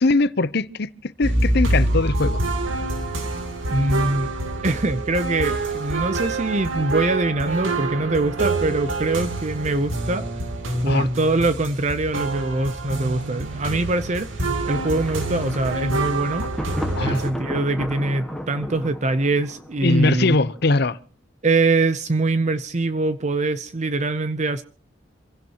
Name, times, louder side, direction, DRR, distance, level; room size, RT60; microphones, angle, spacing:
voice 1, 0.0-2.4 10.9-11.1 17.0-17.2 19.8-21.0, left 3 dB, 55° left, 0.7 m, -21 dB
sound 1, 1.2-17.3, right 2 dB, 90° right, 3.1 m, -26 dB
voice 2, 3.7-4.3 4.6-10.4 10.8-16.5 17.0-20.4 21.4-24.6, right 2 dB, 35° right, 0.7 m, -23 dB
Thunder, 15.0-20.8, equal, ahead, 1.6 m, -34 dB
27.0 x 16.5 x 3.0 m
head